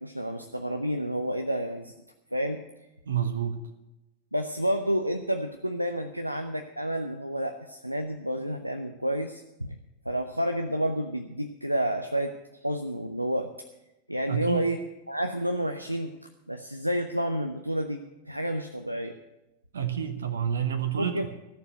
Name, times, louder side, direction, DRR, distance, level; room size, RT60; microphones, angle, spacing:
voice 1, 0.0-1.9 2.3-2.6 4.3-9.8 10.0-12.4 12.6-13.5 14.1-14.8 15.1-16.1 16.5-18.0 18.3-19.2 21.0-21.3, equal, 90° right, 6 dB, 0.6 m, -30 dB
voice 2, 3.1-3.6 14.3-14.7 19.7-21.3, right 8 dB, 65° right, 9 dB, 1.1 m, -29 dB
13.5 x 7.0 x 9.2 m, 0.95 s
figure-of-eight pair, 90°, 0 cm